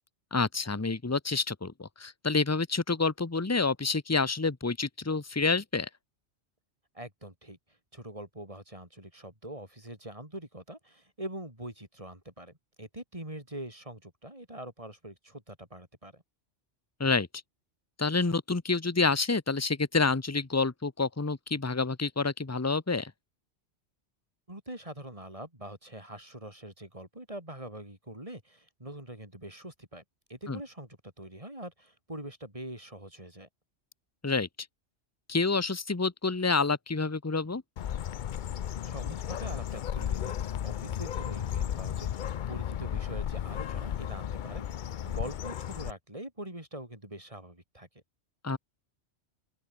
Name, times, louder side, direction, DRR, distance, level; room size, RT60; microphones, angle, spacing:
voice 1, 0.3-5.9 17.0-17.3 18.0-23.1 30.5-30.6 34.2-34.5 35.3-37.6 48.4-48.6, left 4 dB, 15° left, 1.0 m, -28 dB
voice 2, 6.9-7.6 7.9-16.2 24.5-30.0 30.3-33.5 38.8-47.9, right 1 dB, 30° right, 6.0 m, -44 dB
Bird, 37.8-45.9, left 10 dB, 55° left, 0.6 m, -34 dB
open air
omnidirectional pair, 1.1 m